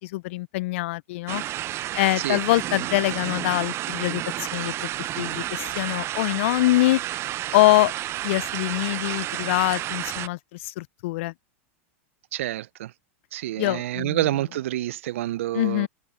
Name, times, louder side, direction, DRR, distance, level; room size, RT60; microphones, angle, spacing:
voice 1, 0.0-1.4 1.9-4.2 4.5-4.9 5.2-7.0 7.5-7.9 8.2-11.3 13.6-14.3 15.5-15.9, left 19 dB, 65° left, 0.4 m, -24 dB
sound 1, 1.3-10.3, right 14 dB, 35° right, 0.6 m, -31 dB
voice 2, 12.3-12.9 13.3-15.9, right 14 dB, 70° right, 0.4 m, -28 dB
hypercardioid pair, 105°, 7 cm